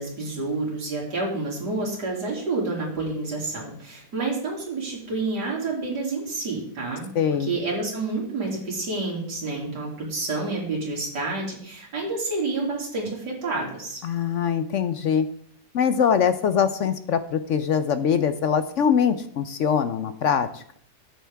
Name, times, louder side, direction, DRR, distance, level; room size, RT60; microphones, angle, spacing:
voice 1, 0.0-7.1 7.4-14.0, right 3 dB, 80° right, -3 dB, 3.3 m, -29 dB
voice 2, 7.1-7.6 14.0-15.3 15.7-20.8, left 7 dB, 65° left, 11 dB, 0.8 m, -23 dB
13.0 x 9.1 x 3.4 m, 0.62 s
omnidirectional pair, 1.8 m